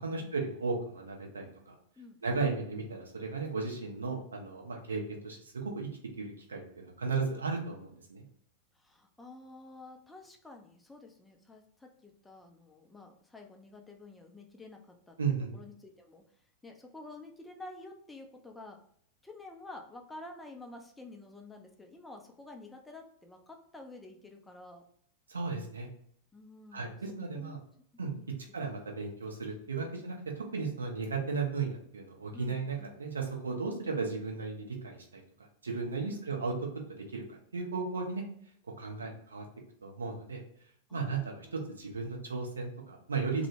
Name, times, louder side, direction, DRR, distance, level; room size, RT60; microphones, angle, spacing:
voice 1, 0.0-1.7 2.2-5.9 6.2-8.2 15.2-15.5 25.3-25.9 26.7-27.6 28.0-28.1 28.5-35.2 35.6-36.5 37.1-38.2 38.8-39.4 39.8-40.4 40.9-43.5, right 4 dB, 75° right, 1 dB, 0.5 m, -35 dB
voice 2, 2.0-2.5 8.7-15.2 15.5-16.2 16.6-18.8 19.2-24.8 26.3-26.9 27.3-27.6 28.2-28.3 32.3-32.9 36.0-36.3 40.9-41.5, left 2 dB, 10° left, 3 dB, 0.3 m, -50 dB
2.1 x 2.0 x 2.9 m, 0.65 s
figure-of-eight pair, 90°, 0 cm